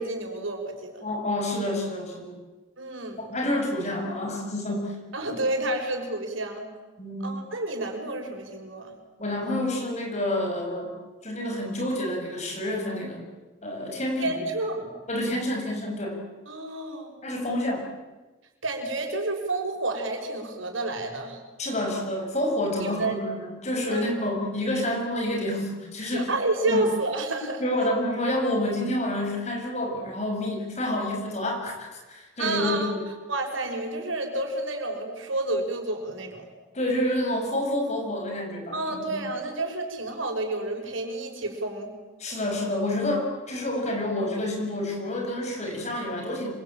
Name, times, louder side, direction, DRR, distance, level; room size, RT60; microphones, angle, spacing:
voice 1, 0.0-1.1 2.8-3.2 5.1-6.7 7.2-9.0 14.2-14.9 16.5-17.1 18.6-21.4 22.8-23.2 23.9-24.2 24.7-24.9 26.1-27.9 32.4-32.9 33.3-36.5 38.7-41.9, right 2 dB, 90° right, 3 dB, 5.9 m, -30 dB
voice 2, 1.0-2.4 3.2-5.0 7.0-7.4 9.2-10.9 11.2-13.2 13.6-14.3 15.1-16.2 17.2-17.8 21.6-26.3 26.7-26.9 27.6-33.0 36.7-39.2 42.2-46.5, left 1 dB, 35° left, 1 dB, 7.5 m, -28 dB
27.0 x 24.5 x 9.0 m, 1.2 s
head